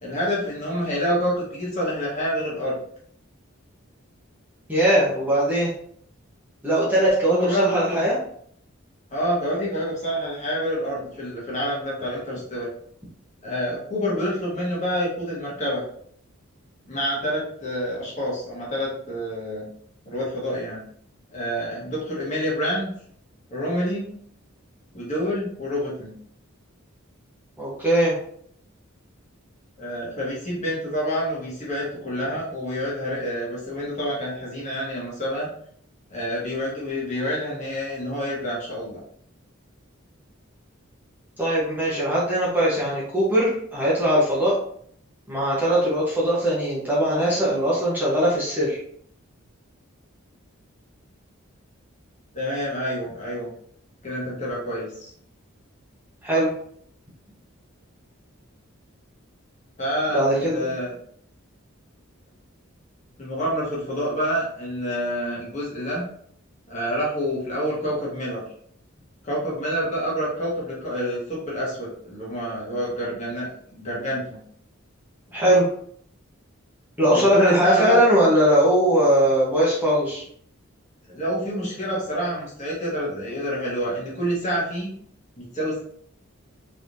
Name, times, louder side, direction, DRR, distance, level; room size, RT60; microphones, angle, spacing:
voice 1, 0.0-2.7 7.3-8.1 9.1-12.7 13.4-15.8 16.9-19.7 20.0-20.8 21.3-22.9 23.5-24.0 24.9-26.1 29.8-35.5 36.1-39.0 52.3-53.5 54.0-55.1 59.8-60.9 63.2-66.0 66.7-68.4 69.2-74.4 77.1-78.0 81.1-84.9 85.4-85.8, equal, 35° left, -6 dB, 1.4 m, -27 dB
voice 2, 4.7-5.7 6.6-8.2 27.6-28.1 41.4-44.6 45.3-48.8 56.2-56.5 60.1-60.7 75.3-75.6 77.0-80.2, equal, 10° right, -8 dB, 1.0 m, -20 dB
4.0 x 3.3 x 2.7 m, 0.63 s
head